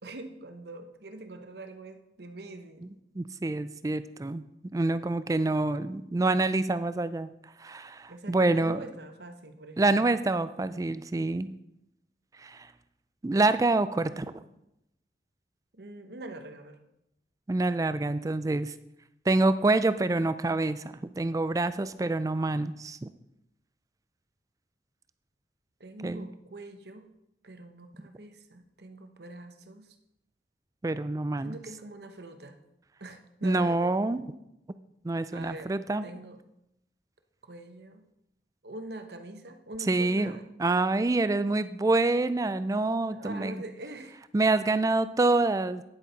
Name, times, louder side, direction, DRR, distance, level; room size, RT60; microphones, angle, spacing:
voice 1, 0.0-2.9 8.1-10.1 15.7-16.8 25.8-27.1 27.4-29.9 31.4-32.6 33.0-33.9 35.3-36.4 37.4-38.0 38.6-40.5 43.1-44.2, right 2 dB, 65° right, 7 dB, 1.0 m, -44 dB
voice 2, 3.1-4.4 4.7-7.3 7.6-8.8 9.8-11.5 12.4-12.7 13.2-14.4 17.5-18.7 19.3-20.8 21.2-23.1 26.0-26.3 30.8-31.6 33.4-34.2 35.0-36.0 39.9-40.3 40.6-43.6 44.3-45.8, right 2 dB, 20° right, 13 dB, 0.3 m, -26 dB
9.9 x 8.0 x 4.1 m, 0.83 s
head